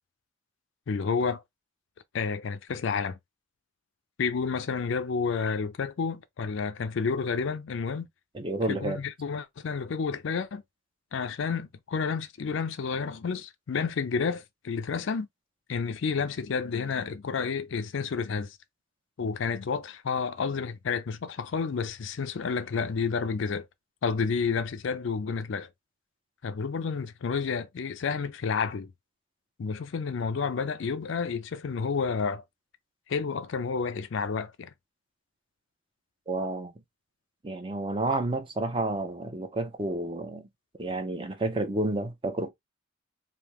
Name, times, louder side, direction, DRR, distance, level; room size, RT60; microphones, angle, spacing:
voice 1, 0.9-1.4 2.1-3.2 4.2-8.1 8.7-10.6 11.1-15.3 15.7-18.6 19.2-23.7 24.0-25.7 26.4-28.9 29.6-32.4 33.1-34.7, left 5 dB, 60° left, 0.4 m, -30 dB
voice 2, 8.3-9.0 36.3-36.7 37.4-40.5 40.8-42.5, right 2 dB, 25° right, 0.6 m, -30 dB
3.5 x 2.7 x 3.0 m
head